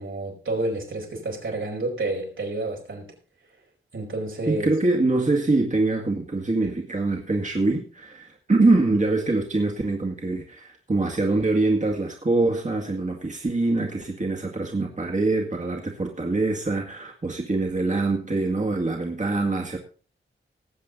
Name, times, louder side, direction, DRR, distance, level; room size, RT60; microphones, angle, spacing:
voice 1, 0.0-3.1 3.9-4.7, right 2 dB, 80° right, 5.1 m, -29 dB
voice 2, 4.5-19.8, right 2 dB, 35° right, 2.1 m, -24 dB
19.0 x 7.6 x 4.0 m
cardioid pair, 60°, 20 cm